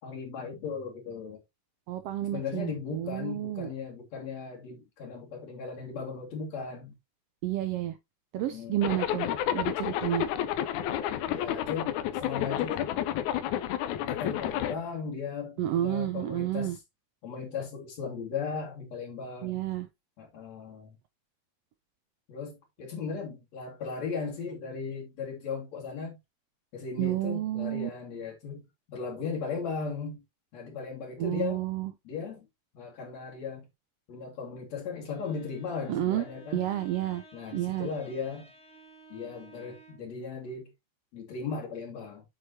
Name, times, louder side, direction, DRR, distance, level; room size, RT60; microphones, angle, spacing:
voice 1, 0.0-1.4 2.3-6.9 8.5-8.8 11.3-12.9 14.0-16.8 17.2-19.6 20.2-21.0 22.3-26.2 26.7-30.2 30.5-31.7 32.0-32.5 32.7-33.7 34.1-36.6 37.3-38.5 39.1-40.7 41.1-42.2, left 5 dB, 65° left, 3.4 m, -37 dB
voice 2, 1.9-3.7 7.4-8.0 8.3-9.3 9.5-10.3 15.6-16.8 19.4-19.9 27.0-27.9 31.2-31.9 35.9-36.2 36.5-37.2 37.5-37.9, right 13 dB, 75° right, 1.4 m, -30 dB
Zipper (clothing), 8.8-14.8, left 11 dB, 85° left, 2.2 m, -30 dB
Bowed string instrument, 34.8-40.2, right 3 dB, 25° left, 2.0 m, -54 dB
8.0 x 7.9 x 2.8 m
omnidirectional pair, 3.3 m